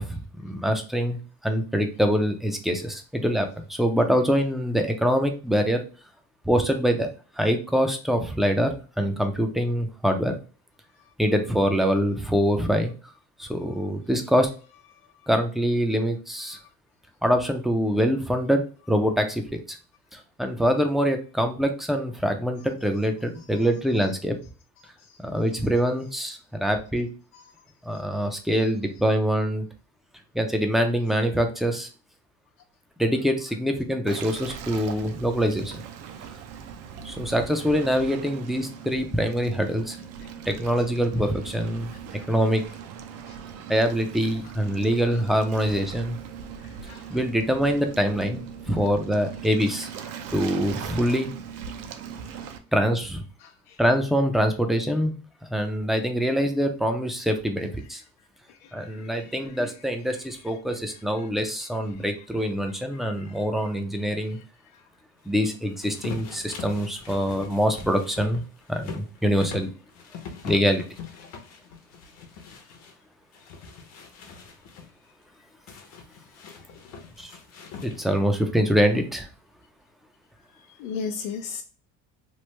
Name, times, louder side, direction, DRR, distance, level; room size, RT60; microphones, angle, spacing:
voice 1, 0.0-5.8 6.5-7.1 7.4-10.4 11.2-12.9 13.4-14.5 15.3-16.6 17.2-19.6 20.1-24.4 25.2-27.1 27.8-29.6 30.3-31.9 33.0-35.8 37.0-40.0 40.5-41.9 42.3-42.6 43.7-46.2 47.1-49.9 50.3-51.3 52.7-53.2 53.8-55.2 55.5-58.0 58.7-64.4 65.3-68.4 68.7-69.7 70.4-70.8 77.2-77.3 77.8-79.3, equal, ahead, 0.4 m, -24 dB
Waves surf, 34.1-52.6, right 7 dB, 55° right, 0.5 m, -40 dB
voice 2, 46.6-47.2 50.0-50.1 53.4-53.8 58.5-59.8 60.1-60.2 60.5-61.3 61.9-62.0 62.7-63.8 64.1-64.4 64.7-64.8 80.5-81.6, left 5 dB, 90° left, 0.5 m, -40 dB
sound 1, 65.8-72.9 73.3-74.9 75.7-78.3, left 5 dB, 55° left, 0.7 m, -42 dB
3.1 x 2.0 x 3.1 m
cardioid pair, 135°, 31 cm